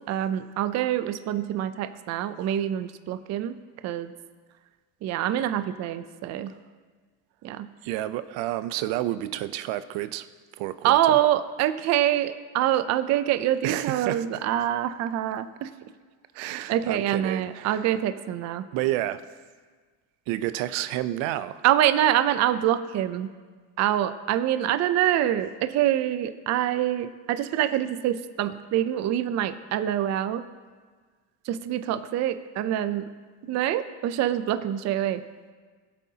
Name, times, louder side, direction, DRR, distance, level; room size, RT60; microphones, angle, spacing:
voice 1, 0.0-3.6 3.8-4.1 5.0-6.5 7.4-7.7 10.8-15.7 16.7-18.6 21.6-23.3 23.8-30.4 31.4-33.1 33.4-35.2, right 11 dB, 40° right, 11 dB, 0.5 m, -25 dB
voice 2, 7.8-10.3 10.6-11.2 13.6-14.3 16.3-17.9 18.7-19.3 20.3-21.6, right 14 dB, 80° right, 13 dB, 0.6 m, -30 dB
19.5 x 8.3 x 2.8 m, 1.5 s
cardioid pair, 145°, 44 cm